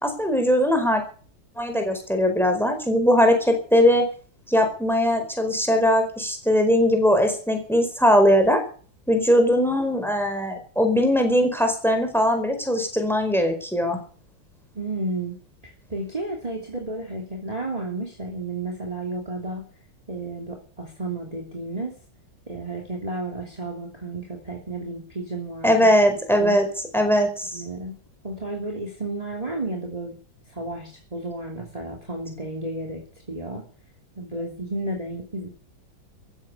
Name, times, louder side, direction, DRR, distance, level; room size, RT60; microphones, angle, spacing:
voice 1, 0.0-1.0 1.6-4.1 4.5-8.6 9.1-14.0 25.6-26.7 26.9-27.6, equal, ahead, 6 dB, 4.7 m, -20 dB
voice 2, 14.7-15.4 15.9-19.6 20.1-21.9 22.5-25.7 26.0-26.1 26.4-26.6 27.5-27.9 28.2-30.2 30.5-33.0 33.3-33.6 34.2-35.5, right 2 dB, 20° right, 1 dB, 3.0 m, -32 dB
15.0 x 13.5 x 6.9 m, 0.43 s
omnidirectional pair, 2.1 m